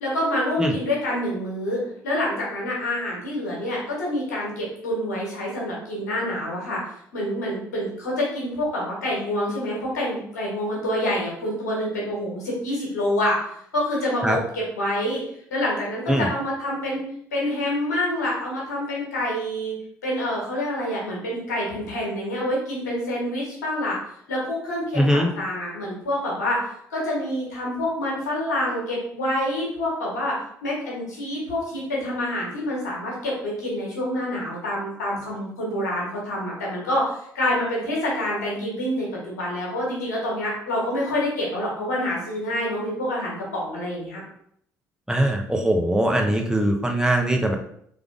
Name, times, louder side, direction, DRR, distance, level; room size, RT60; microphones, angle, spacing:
voice 1, 0.0-6.8 7.1-13.4 13.7-15.2 15.5-17.0 17.3-19.7 20.0-24.0 24.3-30.4 30.6-44.2, left 1 dB, 85° left, -4 dB, 1.4 m, -27 dB
voice 2, 24.9-25.3 45.1-47.6, right 1 dB, 5° right, 2 dB, 0.8 m, -21 dB
3.6 x 3.4 x 3.6 m, 0.68 s
hypercardioid pair, 50°, 9 cm